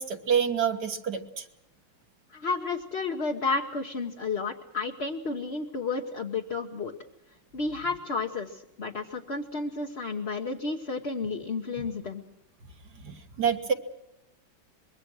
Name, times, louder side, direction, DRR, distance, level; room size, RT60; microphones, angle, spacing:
voice 1, 0.0-1.5 13.0-13.7, right 7 dB, 55° right, 6 dB, 2.0 m, -27 dB
voice 2, 2.3-6.9 7.5-12.2, left 4 dB, 35° left, 1 dB, 1.2 m, -32 dB
25.0 x 22.5 x 6.3 m, 0.88 s
omnidirectional pair, 2.3 m